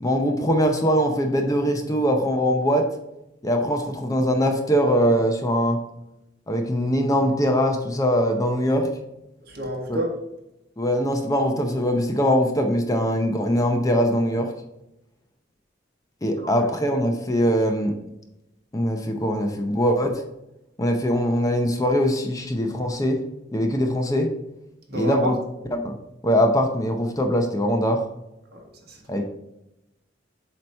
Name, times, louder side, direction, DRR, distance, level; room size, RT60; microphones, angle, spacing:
voice 1, 0.0-2.8 3.4-5.8 6.5-8.9 9.9-10.0 10.8-14.5 16.2-17.9 18.7-20.2 20.8-23.2 23.5-24.3 24.9-25.4 25.7-26.0 26.2-28.0 29.1-29.3, equal, 20° left, 4 dB, 0.6 m, -22 dB
voice 2, 9.5-10.1 16.4-16.7 24.9-25.3 28.5-29.3, equal, 55° right, 1 dB, 1.4 m, -30 dB
7.6 x 3.0 x 5.3 m, 0.88 s
head